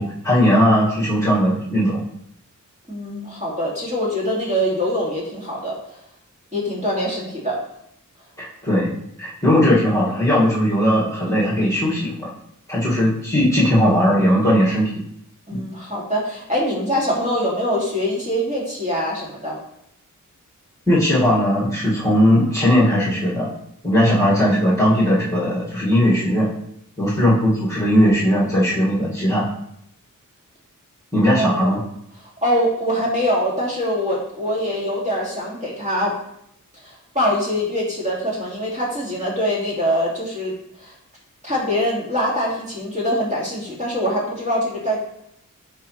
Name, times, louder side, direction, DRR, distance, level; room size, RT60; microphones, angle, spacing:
voice 1, 0.0-2.0 8.4-8.9 9.2-12.3 12.7-14.9 15.5-15.6 20.9-23.5 23.8-26.5 27.0-29.4 31.1-31.8, equal, 10° left, -7 dB, 1.9 m, -18 dB
voice 2, 2.9-6.0 6.5-7.6 15.5-19.6 31.4-31.8 32.4-36.1 36.8-40.9 41.4-45.0, equal, 20° right, -5 dB, 2.5 m, -23 dB
9.9 x 4.6 x 3.2 m, 0.75 s
wide cardioid pair, 115°, 32 cm